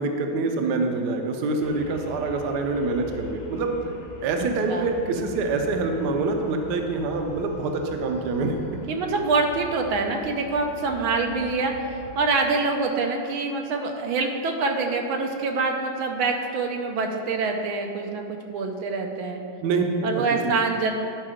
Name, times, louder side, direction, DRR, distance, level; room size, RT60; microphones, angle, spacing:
voice 1, 0.0-3.8 4.2-8.5 19.6-20.5, right 3 dB, 65° right, 4 dB, 1.2 m, -26 dB
sound 1, 1.6-12.3, left 2 dB, 60° left, 1.3 m, -42 dB
voice 2, 8.9-11.9 12.1-19.4 20.0-20.9, right 3 dB, 80° right, 3 dB, 1.5 m, -25 dB
10.5 x 4.7 x 5.0 m, 2.5 s
omnidirectional pair, 2.3 m